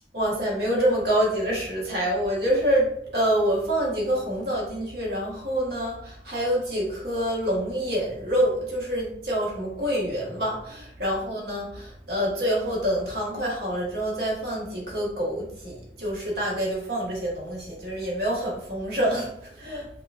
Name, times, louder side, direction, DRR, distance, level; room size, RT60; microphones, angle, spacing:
voice 1, 0.1-19.9, equal, 60° right, -4 dB, 1.3 m, -26 dB
6.5 x 2.3 x 2.4 m, 0.70 s
head